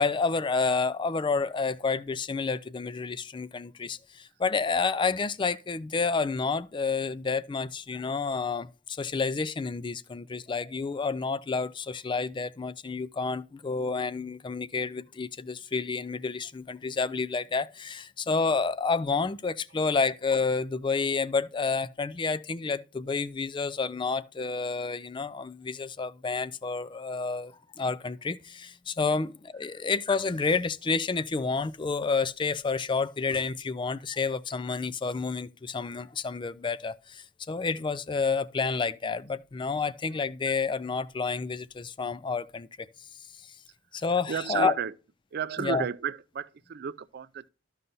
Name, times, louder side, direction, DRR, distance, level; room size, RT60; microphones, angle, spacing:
voice 1, 0.0-43.6 43.9-44.7 45.6-45.8, left 4 dB, 25° left, 0.4 m, -29 dB
voice 2, 44.3-44.9 45.3-47.5, right 7 dB, 50° right, 0.4 m, -33 dB
13.5 x 5.5 x 2.7 m
head